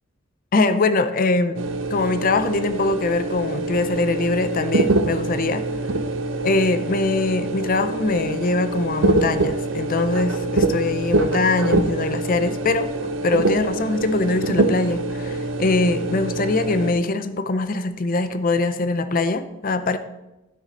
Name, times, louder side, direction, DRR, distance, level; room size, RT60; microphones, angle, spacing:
voice 1, 0.5-1.6 1.9-5.7 6.4-20.0, left 3 dB, 45° left, 11 dB, 0.6 m, -22 dB
sound 1, 1.5-16.9, right 2 dB, 70° right, 0.7 m, -24 dB
12.0 x 6.4 x 4.1 m, 1.0 s
head